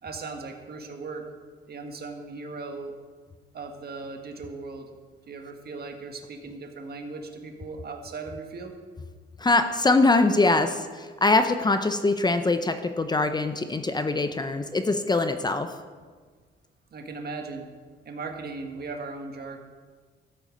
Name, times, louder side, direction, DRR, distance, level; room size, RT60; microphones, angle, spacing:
voice 1, 0.0-1.3 1.7-2.9 3.5-4.9 5.3-8.7 16.9-17.7 18.0-19.6, right 3 dB, 50° right, 4 dB, 1.7 m, -38 dB
voice 2, 9.4-15.7, left 3 dB, 20° left, 9 dB, 0.7 m, -23 dB
13.0 x 8.1 x 5.1 m, 1.5 s
cardioid pair, 90°, 20 cm